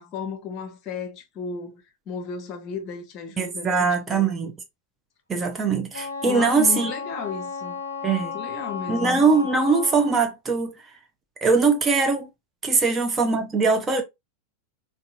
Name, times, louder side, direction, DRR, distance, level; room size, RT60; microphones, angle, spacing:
voice 1, 0.0-4.3 6.2-7.8 8.2-9.2 12.8-12.9, left 6 dB, 35° left, 0.8 m, -34 dB
voice 2, 3.4-4.5 5.3-6.9 8.0-8.3 8.9-10.7 11.4-12.3 12.6-14.0, right 4 dB, 20° right, 0.5 m, -21 dB
Wind instrument woodwind instrument, 5.9-10.2, left 5 dB, 75° left, 0.4 m, -33 dB
3.8 x 2.3 x 2.5 m
figure-of-eight pair, 90°, 0 cm